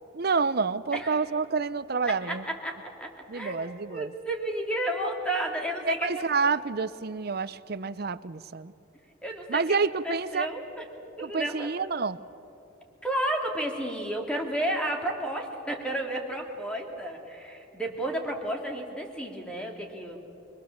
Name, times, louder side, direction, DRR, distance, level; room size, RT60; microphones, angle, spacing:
voice 1, 0.1-2.4 3.3-4.1 5.9-8.7 9.5-10.5 11.2-12.2, right 4 dB, 50° right, 15 dB, 0.6 m, -28 dB
voice 2, 2.1-6.2 9.2-9.8 10.0-10.8 11.2-11.7 13.0-20.2, right 1 dB, 5° left, 1 dB, 2.6 m, -32 dB
25.0 x 22.5 x 7.2 m, 2.9 s
head